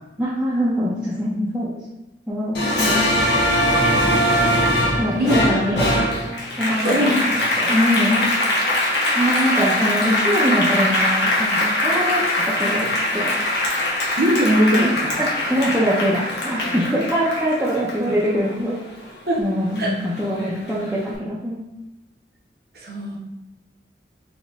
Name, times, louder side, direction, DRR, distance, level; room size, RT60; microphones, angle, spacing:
voice 1, 0.2-1.7 2.3-3.0 5.0-6.1 6.6-8.3 8.6-13.3 13.8-14.2 14.8-18.7 19.4-21.6, equal, 5° right, -10 dB, 0.6 m, -23 dB
Applause, 2.5-19.4 19.8-20.9, left 1 dB, 75° left, 1.0 m, -22 dB
voice 2, 6.8-7.1 14.2-15.2 19.3-19.4 19.8-19.9 22.8-23.2, equal, 60° right, -2 dB, 0.9 m, -20 dB
4.1 x 3.0 x 3.5 m, 1.0 s
head